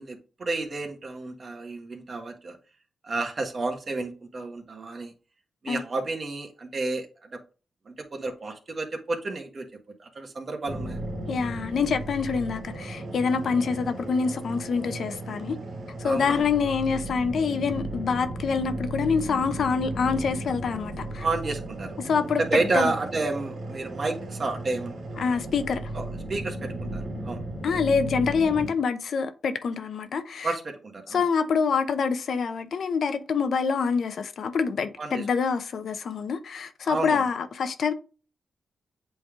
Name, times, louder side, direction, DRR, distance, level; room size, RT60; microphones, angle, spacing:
voice 1, 0.0-2.6 3.0-5.1 5.6-7.4 7.9-9.7 10.0-11.0 16.0-16.4 21.2-22.0 22.4-25.4 25.9-26.0 26.3-27.4 30.4-31.2 35.0-35.3 36.8-37.2, right 3 dB, 45° right, 1.4 m, -31 dB
sound 1, 10.7-28.7, right 1 dB, 70° right, 2.1 m, -35 dB
voice 2, 11.3-15.6 16.0-21.3 22.0-22.9 25.2-25.9 27.6-30.5 31.1-37.9, left 5 dB, 70° left, 0.8 m, -26 dB
7.9 x 3.4 x 3.6 m
cardioid pair, 85°, 0 cm